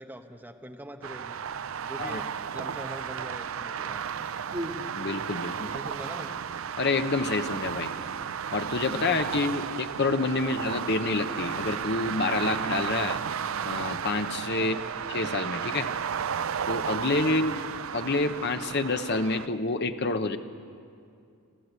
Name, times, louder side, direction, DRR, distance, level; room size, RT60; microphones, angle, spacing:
voice 1, 0.0-1.4 1.8-4.0 5.7-6.3 9.5-9.7 14.6-15.0 17.0-17.4, right 1 dB, 10° right, 4 dB, 1.0 m, -43 dB
sound 1, 1.0-19.5, right 7 dB, 65° right, 0.5 m, -33 dB
Human voice, 2.1-3.0 3.9-5.8 6.7-6.9, equal, 25° right, 1.9 m, -41 dB
voice 2, 4.9-5.7 6.8-7.9 8.5-13.2 13.6-15.9 16.7-17.6 17.9-20.4, left 3 dB, 50° left, 8 dB, 0.9 m, -28 dB
26.5 x 13.5 x 8.2 m, 2.4 s
head